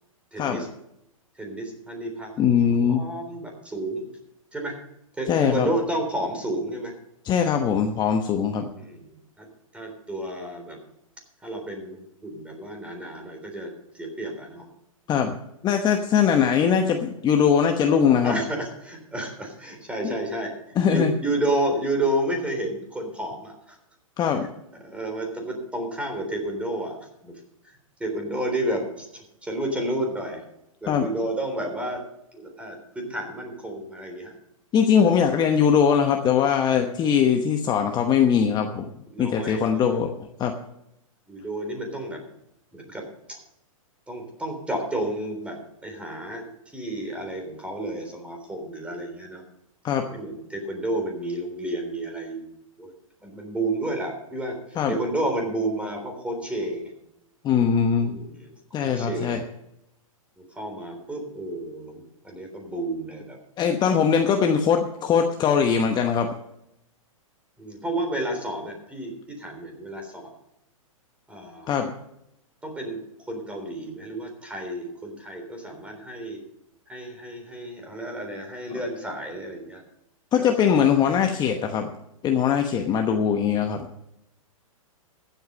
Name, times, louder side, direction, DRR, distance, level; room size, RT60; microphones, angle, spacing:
voice 1, 0.3-0.7 1.4-2.3 2.6-4.1 4.5-4.8 5.2-6.9 8.6-9.5 9.7-10.8 11.4-14.7 18.2-20.5 20.9-23.8 24.8-27.0 27.2-30.4 30.8-32.0 32.3-34.3 39.1-40.1 41.3-42.2 42.7-43.4 44.1-46.4 46.7-49.4 50.0-52.4 52.8-52.9 53.2-56.9 58.0-58.6 58.8-59.4 60.4-63.4 67.6-70.3 71.3-71.9 72.6-73.0 73.3-76.4 76.9-79.8 80.3-80.8, right 1 dB, 5° right, 3 dB, 3.6 m, -31 dB
voice 2, 2.4-3.0 5.3-5.7 7.2-8.7 15.1-15.3 15.6-18.4 20.0-20.1 20.8-21.1 24.2-24.5 30.9-31.1 34.7-38.8 39.2-40.1 40.4-40.6 49.8-50.1 54.8-55.0 57.4-58.2 58.7-59.4 63.6-66.3 71.7-71.9 80.3-81.9 82.2-83.8, left 7 dB, 25° left, 4 dB, 1.1 m, -21 dB
15.0 x 8.2 x 5.4 m, 0.82 s
hypercardioid pair, 120°, 18 cm